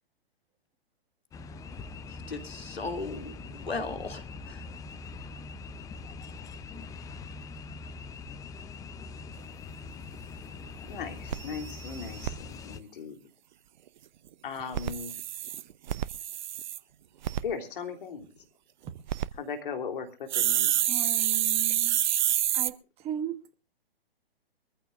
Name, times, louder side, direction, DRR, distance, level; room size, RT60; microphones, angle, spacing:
sound 1, 1.3-12.8, left 4 dB, 10° left, 0.6 m, -43 dB
voice 1, 2.1-4.6, left 3 dB, 80° left, 2.9 m, -37 dB
sound 2, 10.1-10.2 10.6-10.7 10.9-11.0 11.3-12.3 14.6-16.8 17.2-17.4 18.9-19.3 20.3-22.7, right 11 dB, 50° right, 0.7 m, -28 dB
voice 2, 10.9-13.3 14.4-15.1 17.4-18.4 19.4-20.9, left 6 dB, 60° left, 3.4 m, -38 dB
voice 3, 20.9-22.0 22.5-22.7 23.0-23.5, right 10 dB, 20° right, 1.3 m, -36 dB
23.0 x 14.5 x 2.5 m
figure-of-eight pair, 120°, 30 cm